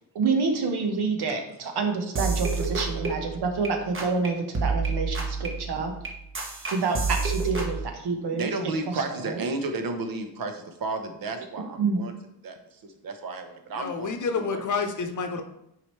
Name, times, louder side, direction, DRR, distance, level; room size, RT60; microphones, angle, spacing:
voice 1, 0.1-5.9 6.7-8.5 9.2-9.4 11.8-12.0, right 4 dB, 85° right, 4 dB, 1.3 m, -27 dB
sound 1, 2.2-3.7 3.9-4.3 4.5-7.8, right 4 dB, 30° right, 1.1 m, -29 dB
voice 2, 8.3-12.1 12.4-14.1 14.5-14.8, right 3 dB, 60° right, 6 dB, 1.0 m, -33 dB
voice 3, 13.7-15.4, left 5 dB, 50° left, 6 dB, 0.8 m, -29 dB
9.4 x 4.9 x 3.2 m, 0.81 s
wide cardioid pair, 170°, 38 cm